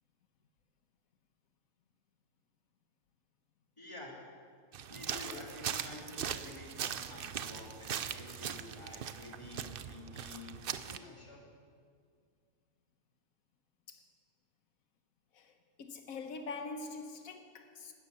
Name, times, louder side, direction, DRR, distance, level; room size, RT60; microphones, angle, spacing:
voice 1, 3.8-4.2 4.9-11.5, left 2 dB, 20° left, -2 dB, 2.9 m, -49 dB
sound 1, 4.7-11.0, right 8 dB, 55° right, 0.6 m, -40 dB
voice 2, 15.3-17.9, left 3 dB, 85° left, 6 dB, 1.4 m, -44 dB
12.5 x 12.5 x 8.4 m, 2.1 s
omnidirectional pair, 1.4 m